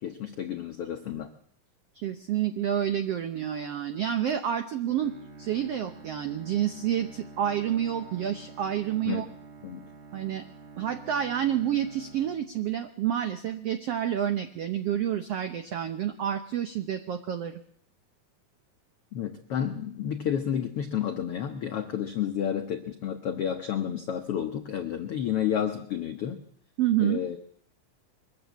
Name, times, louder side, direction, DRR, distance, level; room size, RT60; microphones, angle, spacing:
voice 1, 0.0-1.3 9.1-9.3 9.6-9.9 19.1-26.4 27.0-27.4, left 9 dB, 75° left, 6 dB, 1.3 m, -31 dB
voice 2, 2.0-9.3 10.1-10.4 10.8-17.6 26.8-27.2, right 10 dB, 80° right, 8 dB, 1.4 m, -29 dB
Bowed string instrument, 4.8-13.1, right 4 dB, 35° right, 1.3 m, -48 dB
22.5 x 14.0 x 8.3 m, 0.64 s
omnidirectional pair, 4.1 m